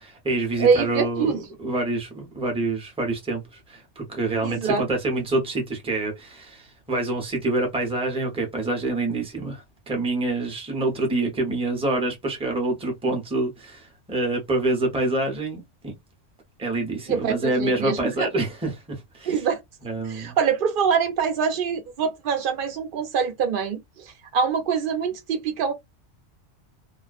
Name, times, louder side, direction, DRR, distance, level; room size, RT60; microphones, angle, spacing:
voice 1, 0.0-15.9 16.6-19.4 19.8-20.4, right 2 dB, 5° right, 0.6 m, -27 dB
voice 2, 0.6-1.4 4.4-4.8 17.1-18.3 19.3-19.6 20.1-25.7, right 6 dB, 55° right, 0.7 m, -24 dB
2.3 x 2.2 x 2.4 m
omnidirectional pair, 1.3 m